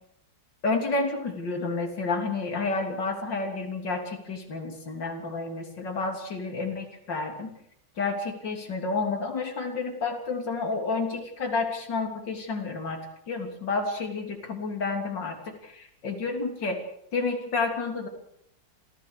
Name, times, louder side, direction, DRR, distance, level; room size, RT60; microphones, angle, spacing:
voice 1, 0.6-7.5 8.0-13.0 13.3-16.8 17.1-18.1, left 3 dB, 65° left, 3 dB, 3.9 m, -30 dB
27.5 x 16.0 x 6.6 m, 0.73 s
omnidirectional pair, 2.1 m